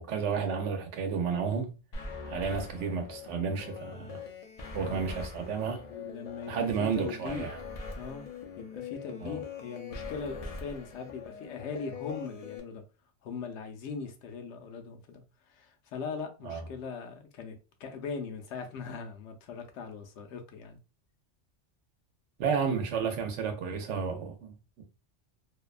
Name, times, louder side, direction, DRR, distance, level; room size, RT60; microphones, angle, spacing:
voice 1, 0.0-1.8 2.3-4.2 4.7-5.9 6.5-7.6 9.2-9.4 16.4-16.6 22.4-24.8, right 6 dB, 80° right, 0.9 m, -32 dB
sound 1, 1.9-12.6, left 4 dB, 55° left, 0.4 m, -42 dB
voice 2, 5.7-7.5 8.0-8.3 8.6-12.8 13.2-15.2 15.5-20.8, left 5 dB, 75° left, 0.8 m, -40 dB
2.6 x 2.1 x 2.3 m
omnidirectional pair, 1.2 m